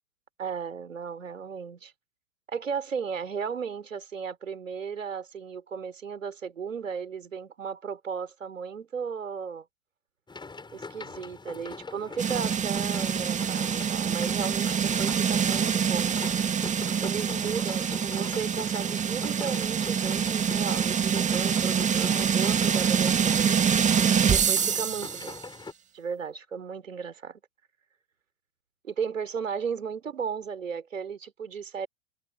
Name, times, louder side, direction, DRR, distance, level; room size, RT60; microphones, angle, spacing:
voice 1, 0.4-1.9 2.5-9.7 10.7-16.3 17.0-23.6 24.2-25.4 25.9-27.4 28.8-31.9, right 6 dB, 75° right, 3.6 m, -35 dB
sound 1, 10.3-25.7, left 4 dB, 10° left, 7.9 m, -43 dB
sound 2, 12.2-25.4, right 7 dB, 20° right, 2.2 m, -25 dB
figure-of-eight pair, 90°, 39 cm